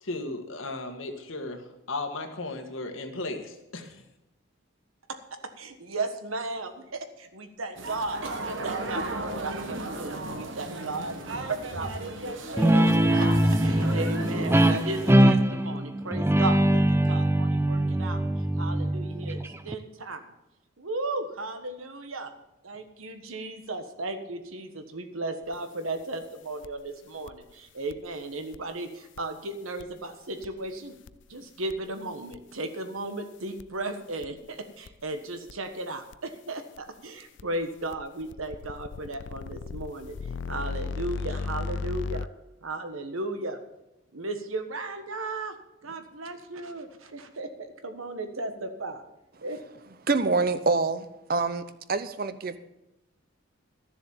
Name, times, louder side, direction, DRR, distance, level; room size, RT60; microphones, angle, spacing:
voice 1, 0.0-4.0, left 2 dB, 75° left, 5 dB, 1.7 m, -35 dB
voice 2, 5.3-18.2 18.5-19.4 19.6-20.3 20.8-22.3 22.6-30.9 31.3-40.2 40.5-42.3 42.6-43.6 44.1-45.6 45.8-49.0 49.4-49.6, right 2 dB, 90° right, 8 dB, 1.4 m, -35 dB
sound 1, 7.8-15.1, right 2 dB, 70° right, 1.4 m, -35 dB
Guitar, 12.6-19.7, right 1 dB, 10° right, 0.4 m, -22 dB
sound 2, 25.5-25.6 26.6-26.9 27.3-27.5 27.9-28.1 28.5-28.6 29.2-29.3 29.8-29.9 30.4-30.7 31.1-31.3 31.7-31.9 32.3-32.4 33.6-33.8 34.2-34.5 34.9-35.0 35.5-35.6 36.1-36.2 36.8-36.9 37.4-42.3, left 4 dB, 60° left, 0.4 m, -35 dB
voice 3, 50.1-51.6 51.9-52.6, right 3 dB, 45° right, 13 dB, 0.7 m, -26 dB
13.0 x 7.2 x 7.2 m, 0.93 s
head